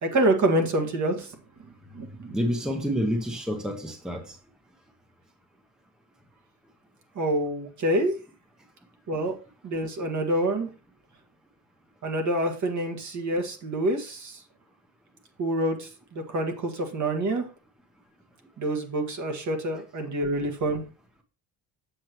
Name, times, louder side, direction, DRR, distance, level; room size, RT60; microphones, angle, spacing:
voice 1, 0.0-1.4 1.9-2.4 7.2-8.1 9.1-9.3 9.6-10.7 12.0-14.4 15.4-17.5 18.6-20.8, right 1 dB, 45° right, 1.7 m, -27 dB
voice 2, 2.3-4.4, equal, ahead, 0.9 m, -28 dB
7.7 x 6.4 x 3.0 m
cardioid pair, 105°, 39 cm